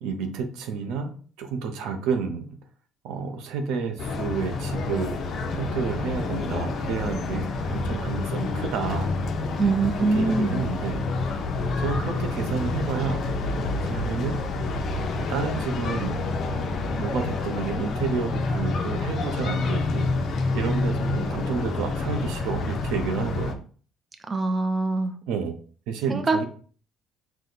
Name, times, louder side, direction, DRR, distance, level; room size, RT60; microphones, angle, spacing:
voice 1, 0.0-2.5 3.0-5.2 5.5-7.4 7.7-9.1 10.0-11.0 11.8-14.4 15.1-20.1 20.5-23.6 25.3-25.5 25.9-26.4, right 5 dB, 85° right, 6 dB, 0.7 m, -30 dB
sound 1, 4.0-23.5, left 3 dB, 55° left, 0.6 m, -28 dB
voice 2, 9.6-10.6 24.3-25.2 26.1-26.4, right 3 dB, 25° right, 7 dB, 0.5 m, -23 dB
4.8 x 2.2 x 3.9 m, 0.43 s
cardioid pair, 110°, 0 cm